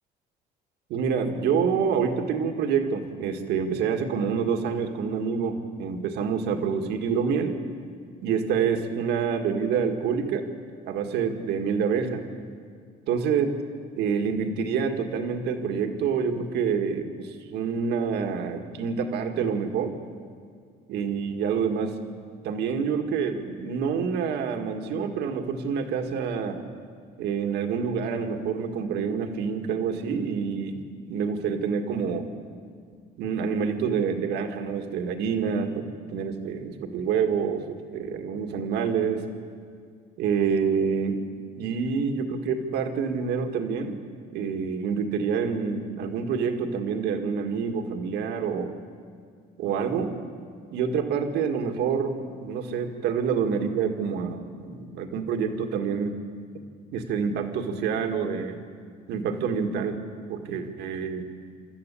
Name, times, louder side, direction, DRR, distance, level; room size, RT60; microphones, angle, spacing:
voice 1, 0.9-7.6 8.2-10.5 10.9-12.2 13.1-13.5 14.0-20.0 20.9-22.0 22.4-26.6 27.2-30.8 31.1-32.3 33.2-39.2 40.2-41.2 41.6-44.0 44.3-48.7 49.6-50.2 50.7-56.2 56.9-58.6 59.1-60.0 60.3-61.3, right 6 dB, 80° right, 4 dB, 2.1 m, -27 dB
27.5 x 13.5 x 8.6 m, 2.2 s
cardioid pair, 110°, 17 cm